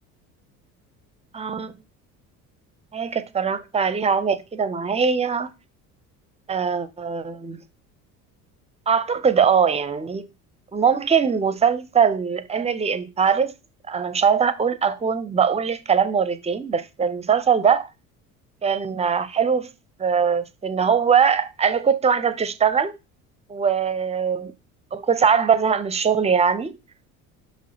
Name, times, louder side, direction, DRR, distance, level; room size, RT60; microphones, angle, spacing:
voice 1, 1.3-1.7 2.9-5.5 6.5-7.6 8.9-10.3 10.7-13.5 13.9-17.9 18.6-19.7 20.0-22.9 23.5-24.5 24.9-26.8, right 6 dB, 15° right, 0.5 m, -21 dB
6.1 x 5.8 x 2.9 m
figure-of-eight pair, 60°, 46 cm